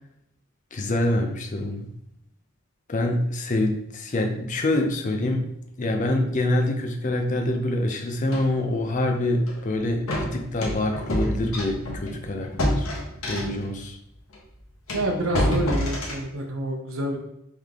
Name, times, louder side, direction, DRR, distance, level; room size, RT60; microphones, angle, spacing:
voice 1, 0.7-1.9 2.9-5.5 5.8-12.9 13.2-14.0, left 1 dB, 35° left, 4 dB, 0.5 m, -25 dB
sound 1, 8.3-8.5 9.4-9.6 10.1-13.7 14.3-14.4 14.9-16.3, equal, 85° left, 1.0 m, -28 dB
voice 2, 14.9-17.2, right 1 dB, 70° right, 2 dB, 0.7 m, -27 dB
3.7 x 3.2 x 3.5 m, 0.78 s
head